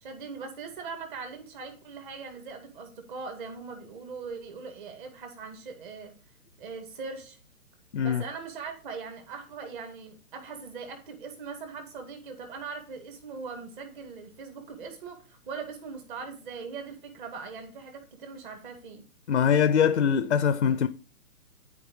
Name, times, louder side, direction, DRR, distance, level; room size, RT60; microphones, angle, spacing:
voice 1, 0.0-6.1 6.6-7.4 8.0-19.0, right 5 dB, 35° right, 2.2 m, -40 dB
voice 2, 19.3-20.9, left 7 dB, 50° left, 0.6 m, -23 dB
12.0 x 4.8 x 3.1 m
figure-of-eight pair, 130°, 45 cm